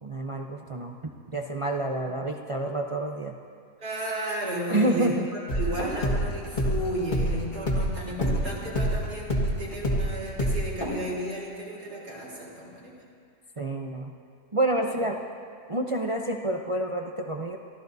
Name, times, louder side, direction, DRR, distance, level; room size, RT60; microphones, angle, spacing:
voice 1, 0.0-0.9 1.3-3.3 4.7-5.2 13.6-14.1 14.5-15.2 15.7-17.6, right 1 dB, 50° right, 1 dB, 0.3 m, -28 dB
voice 2, 3.8-12.9, right 1 dB, 80° right, -6 dB, 4.1 m, -34 dB
sound 1, 4.2-11.5, equal, 75° left, 4.7 m, -43 dB
sound 2, 5.5-10.1 10.4-10.6, equal, 30° left, 1.7 m, -26 dB
30.0 x 14.5 x 2.7 m, 2.2 s
omnidirectional pair, 1.7 m